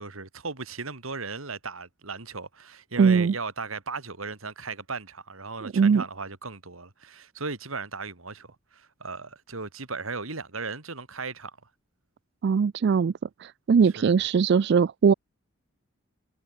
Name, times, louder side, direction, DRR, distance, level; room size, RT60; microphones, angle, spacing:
voice 1, 0.0-11.5 14.0-14.1, right 4 dB, 90° right, 3.1 m, -36 dB
voice 2, 3.0-3.4 5.6-6.0 12.4-13.1 13.4-15.1, right 6 dB, 55° right, 0.3 m, -21 dB
head